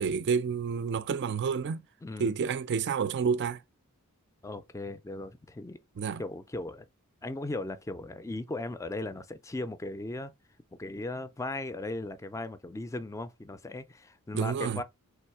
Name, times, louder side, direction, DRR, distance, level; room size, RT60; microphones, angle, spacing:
voice 1, 0.0-1.8 2.2-3.6 6.0-6.2 14.3-14.8, right 6 dB, 50° right, 0.4 m, -29 dB
voice 2, 2.0-2.3 4.4-5.8 6.2-6.9 7.2-10.3 10.8-14.8, left 2 dB, 15° left, 0.4 m, -37 dB
3.4 x 3.1 x 4.6 m
head